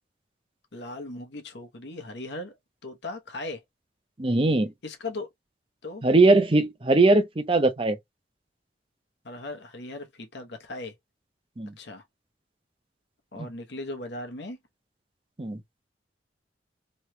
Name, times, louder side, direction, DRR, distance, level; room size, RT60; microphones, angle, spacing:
voice 1, 0.7-2.6 2.8-3.6 4.8-5.3 5.8-6.0 9.2-10.9 11.8-12.0 13.3-14.6, left 2 dB, 65° left, 0.9 m, -38 dB
voice 2, 4.2-4.7 6.0-8.0 11.6-11.7 13.4-13.5 15.4-15.6, right 2 dB, 30° right, 0.6 m, -20 dB
3.1 x 3.0 x 3.1 m
head